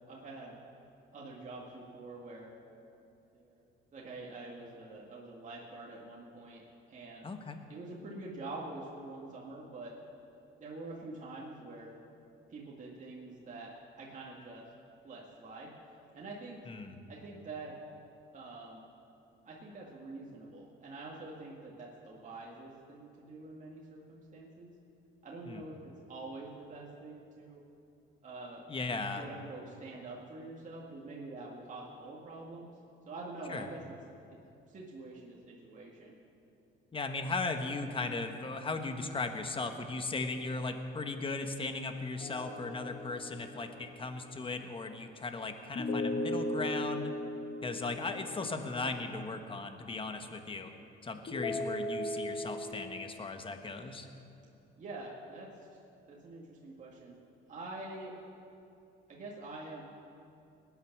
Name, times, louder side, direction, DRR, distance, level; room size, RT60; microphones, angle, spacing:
voice 1, 0.1-0.6 1.1-2.5 3.3-6.6 6.9-7.3 7.7-9.9 10.6-12.0 12.5-13.7 14.0-14.6 15.0-15.7 16.1-16.6 17.1-17.7 18.3-18.8 19.4-24.7 25.2-27.6 28.2-28.6 29.2-32.7 33.1-33.9 34.3-34.4 34.7-36.2 54.8-55.5 56.1-57.2 57.5-58.1 59.1-59.8, right 2 dB, 40° right, -4 dB, 2.0 m, -46 dB
voice 2, 7.2-7.6 16.7-16.9 25.4-25.6 28.7-29.2 33.5-33.7 36.9-47.1 47.6-50.7 51.0-54.1, left 3 dB, 25° left, 7 dB, 1.3 m, -37 dB
sound 1, 42.2-43.8 45.8-48.9 51.3-52.7, left 1 dB, 45° left, 1.9 m, -37 dB
19.5 x 9.6 x 6.1 m, 2.7 s
cardioid pair, 115°, 21 cm